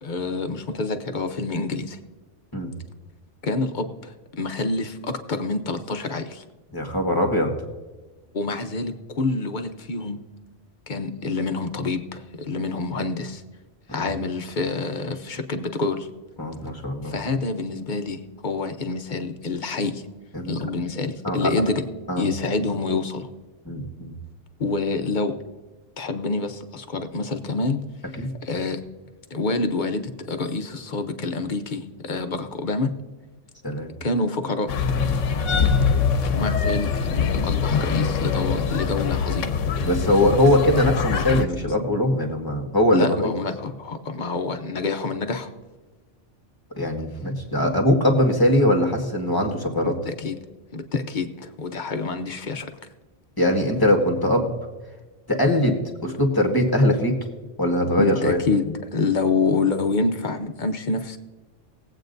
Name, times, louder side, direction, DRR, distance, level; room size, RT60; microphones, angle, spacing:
voice 1, 0.0-2.0 3.4-6.4 8.3-10.2 10.9-13.4 13.9-16.1 17.0-20.0 20.5-21.8 22.2-23.3 24.6-25.4 26.0-27.8 28.4-28.8 29.3-32.9 34.0-34.7 36.3-39.5 42.9-45.5 49.8-50.3 50.7-52.7 58.0-61.2, left 3 dB, 45° left, 7 dB, 0.8 m, -27 dB
voice 2, 6.7-7.5 13.9-14.1 16.4-17.1 20.3-20.5 21.2-21.5 22.1-22.3 23.6-24.1 28.2-28.3 33.6-33.9 35.5-35.7 39.8-43.3 46.8-49.9 53.4-54.5 55.3-57.2 57.6-58.4, left 1 dB, 20° left, 2 dB, 1.5 m, -21 dB
sound 1, 34.7-41.4, left 6 dB, 80° left, 1.1 m, -23 dB
20.0 x 8.3 x 2.6 m, 1.3 s
omnidirectional pair, 1.3 m